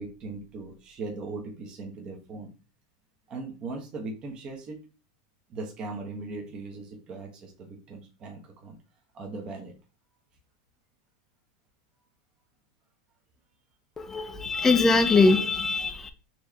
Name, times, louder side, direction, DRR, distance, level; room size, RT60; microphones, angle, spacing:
voice 1, 0.0-2.5 3.3-4.8 5.5-8.8 9.1-9.7, right 3 dB, 35° right, 1.2 m, -39 dB
voice 2, 14.0-16.1, left 3 dB, 15° left, 0.6 m, -22 dB
4.5 x 3.4 x 2.9 m
supercardioid pair, 125°, 3 cm